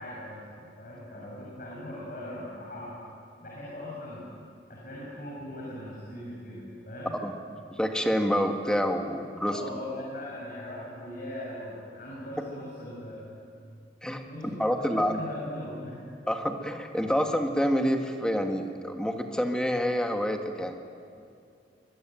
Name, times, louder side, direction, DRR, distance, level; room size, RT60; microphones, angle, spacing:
voice 1, 0.0-3.0 3.4-4.3 4.7-7.2 9.5-13.3 14.2-16.0, left 1 dB, 50° left, -5 dB, 6.4 m, -40 dB
voice 2, 7.7-9.6 14.0-14.2 14.6-15.2 16.3-20.8, equal, 5° left, 4 dB, 1.8 m, -27 dB
23.0 x 22.0 x 9.2 m, 2.4 s
head